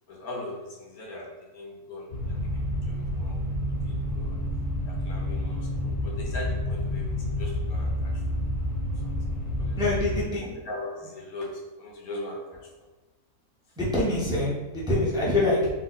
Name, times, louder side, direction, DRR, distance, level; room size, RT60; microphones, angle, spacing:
voice 1, 0.1-3.4 3.7-4.4 4.8-8.4 9.0-9.2 9.6-9.8 10.4-12.9, left 1 dB, 80° left, -1 dB, 1.4 m, -40 dB
sound 1, 2.1-10.2, left 1 dB, 65° left, 1.2 m, -29 dB
voice 2, 9.8-10.4 13.8-15.7, left 2 dB, 5° right, -6 dB, 0.7 m, -25 dB
4.5 x 2.6 x 3.9 m, 1.2 s
omnidirectional pair, 1.5 m